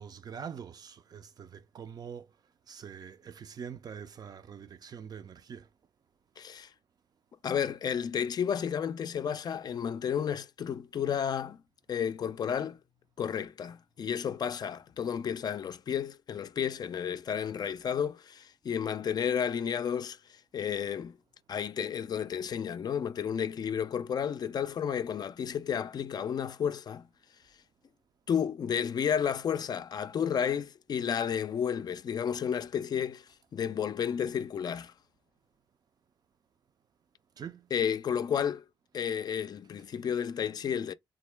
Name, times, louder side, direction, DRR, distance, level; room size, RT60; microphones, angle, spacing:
voice 1, 0.0-2.4 2.7-5.7 37.4-37.7, right 7 dB, 50° right, 0.4 m, -44 dB
voice 2, 6.4-6.7 7.4-11.6 11.9-12.8 13.2-21.2 21.5-27.1 28.3-33.3 33.5-34.9 37.7-38.6 38.9-40.9, left 8 dB, 55° left, 0.4 m, -32 dB
3.7 x 2.1 x 3.2 m
cardioid pair, 85°, 8 cm